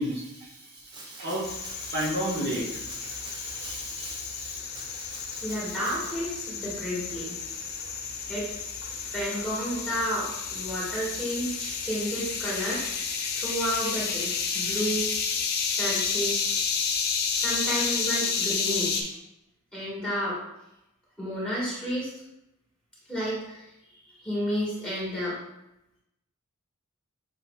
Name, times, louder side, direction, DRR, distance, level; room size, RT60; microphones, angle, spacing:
voice 1, 0.0-4.6, right 1 dB, 50° right, -4 dB, 1.3 m, -33 dB
Domestic sounds home sounds, 0.9-2.1 2.5-4.2 4.7-6.2, right 2 dB, 20° right, 0.6 m, -46 dB
sound 1, 1.4-19.0, left 5 dB, 50° left, 0.6 m, -31 dB
voice 2, 5.4-7.3 8.3-8.5 9.1-12.8 13.3-15.1 15.8-16.5 17.3-19.1 19.7-20.4 21.2-22.1 23.1-23.7 24.2-25.3, equal, 5° left, -8 dB, 1.7 m, -31 dB
7.6 x 2.8 x 2.3 m, 0.87 s
head